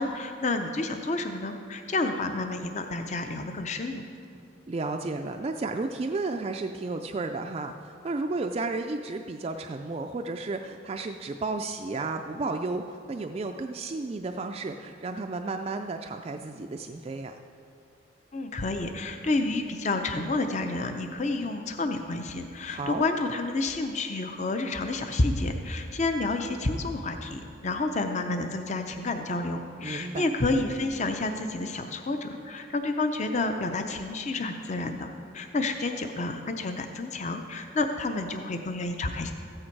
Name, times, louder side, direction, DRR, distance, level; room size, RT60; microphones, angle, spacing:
voice 1, 0.0-4.0 18.3-39.3, left 2 dB, 35° left, 6 dB, 0.6 m, -30 dB
voice 2, 4.7-17.3 22.7-23.0 29.8-30.3, right 3 dB, 30° right, 4 dB, 0.3 m, -33 dB
14.0 x 8.7 x 4.6 m, 2.5 s
head